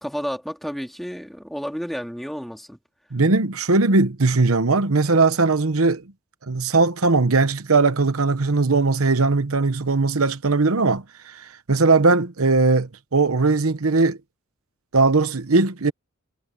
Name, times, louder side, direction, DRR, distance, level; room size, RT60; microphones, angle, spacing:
voice 1, 0.0-2.8, equal, ahead, 2.6 m, -31 dB
voice 2, 3.1-6.0 6.5-14.2 14.9-15.9, right 3 dB, 80° right, 1.0 m, -19 dB
head